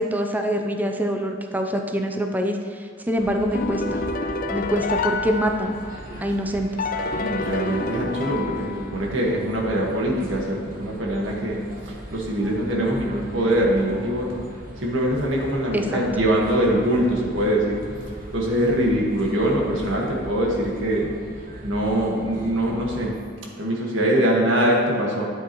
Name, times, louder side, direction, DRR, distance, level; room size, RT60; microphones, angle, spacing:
voice 1, 0.0-4.0 4.5-5.8 6.2-6.7 15.7-15.9, equal, 10° right, 3 dB, 0.5 m, -25 dB
sound 1, 3.2-23.1, equal, 45° right, 1.5 m, -39 dB
sound 2, 3.5-6.2 6.8-9.3, left 3 dB, 45° left, 0.4 m, -28 dB
voice 2, 7.1-11.6 11.9-14.4 14.8-17.8 18.3-21.1 21.6-23.1 23.6-25.3, right 1 dB, 85° right, -2 dB, 1.6 m, -23 dB
9.9 x 8.1 x 3.0 m, 2.2 s
head